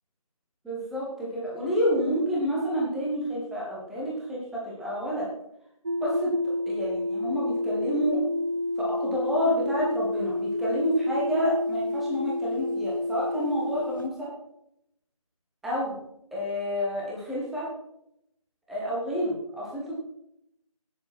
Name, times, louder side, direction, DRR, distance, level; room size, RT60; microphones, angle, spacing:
voice 1, 0.6-5.3 6.0-6.3 6.7-8.2 8.8-14.3 15.6-16.0 16.3-17.7 18.7-19.9, equal, ahead, -6 dB, 1.1 m, -29 dB
sound 1, 5.9-14.1, left 1 dB, 35° right, 1.1 m, -29 dB
18.0 x 9.8 x 4.4 m, 0.78 s
figure-of-eight pair, 160°, 19 cm